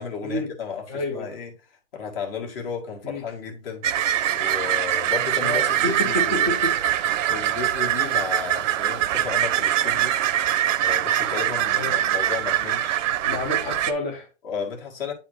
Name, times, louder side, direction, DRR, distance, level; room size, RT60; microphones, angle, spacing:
voice 1, 0.0-1.5 1.9-6.5 7.0-10.5 10.8-13.0 14.4-15.1, left 6 dB, 50° left, 1.9 m, -33 dB
voice 2, 0.9-1.3 3.0-3.2 5.4-6.7 11.7-12.0 13.2-14.3, left 2 dB, 10° left, 0.3 m, -29 dB
sound 1, 3.8-13.9, right 11 dB, 80° right, 0.7 m, -23 dB
8.8 x 4.1 x 3.0 m
hypercardioid pair, 150°, 37 cm